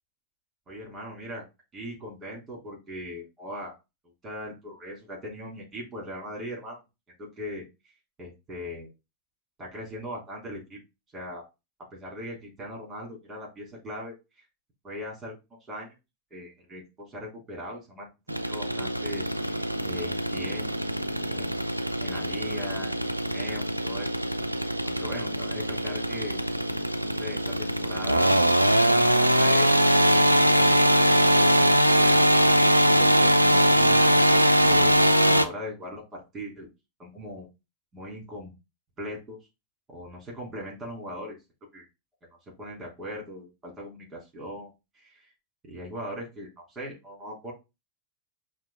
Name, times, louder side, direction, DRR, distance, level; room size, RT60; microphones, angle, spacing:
voice 1, 0.7-1.5 1.7-3.7 4.2-6.8 7.1-7.6 8.2-8.9 9.6-10.8 11.1-11.4 11.9-14.4 14.8-15.4 15.7-15.9 16.3-20.7 21.3-21.7 22.0-23.0 23.3-24.1 24.8-26.4 27.2-28.4 28.8-29.9 34.6-36.7 37.0-37.5 37.9-38.5 39.0-39.4 39.9-41.4 41.7-41.9 42.2-42.3 42.6-45.3 45.6-47.5, equal, 20° right, -2 dB, 3.2 m, -39 dB
sound 1, 18.3-35.5, equal, 85° right, 0.3 m, -22 dB
5.6 x 2.5 x 3.7 m, 0.25 s
figure-of-eight pair, 90°, 0 cm